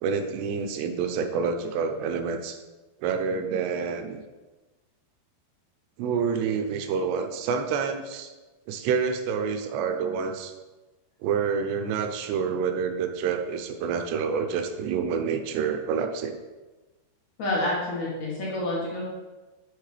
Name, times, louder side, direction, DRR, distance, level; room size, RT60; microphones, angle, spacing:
voice 1, 0.0-2.6 3.0-4.2 6.0-8.3 8.7-10.5 11.2-16.4, right 6 dB, 80° right, 6 dB, 2.7 m, -28 dB
voice 2, 17.4-19.0, left 1 dB, 55° left, -5 dB, 2.4 m, -28 dB
8.2 x 6.3 x 3.3 m, 1.2 s
omnidirectional pair, 4.9 m